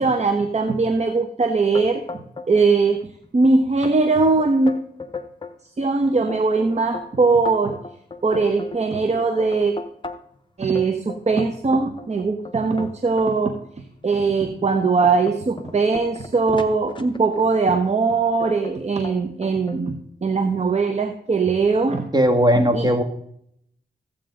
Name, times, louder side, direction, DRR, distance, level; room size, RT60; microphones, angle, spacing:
voice 1, 0.0-2.0 2.5-3.0 3.3-4.7 5.8-7.7 8.2-9.7 10.6-13.5 14.0-22.0 22.7-22.9, right 4 dB, 40° right, 6 dB, 1.1 m, -20 dB
sound 1, 1.7-2.7 2.9-3.5 3.8-4.0 4.4-5.6 6.0-10.4 10.8-13.3 13.9-14.1 14.5-17.6 18.4-18.8 19.0-19.8, left 3 dB, 25° left, 1.2 m, -36 dB
voice 2, 22.1-23.0, equal, 25° right, 6 dB, 1.8 m, -17 dB
14.5 x 8.4 x 3.8 m, 0.71 s
cardioid pair, 70°, 18 cm